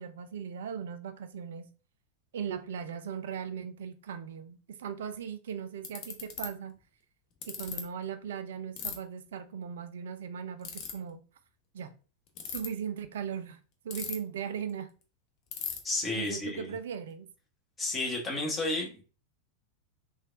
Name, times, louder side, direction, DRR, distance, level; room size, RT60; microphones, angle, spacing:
voice 1, 0.0-1.7 2.3-6.8 7.5-11.2 11.7-11.9 12.5-13.6 13.8-14.9 16.1-17.3, right 7 dB, 60° right, 0.4 m, -38 dB
Ratchet pawl, 5.1-5.2 5.8-6.5 7.4-7.8 8.8-8.9 10.6-10.9 12.3-12.7 13.9-14.4 14.7-14.8 15.0-15.1 15.5-15.8, left 8 dB, 40° left, 0.7 m, -36 dB
voice 2, 15.8-16.8 17.8-19.0, left 2 dB, 20° left, 1.0 m, -32 dB
3.1 x 2.4 x 2.5 m
figure-of-eight pair, 90°, 0 cm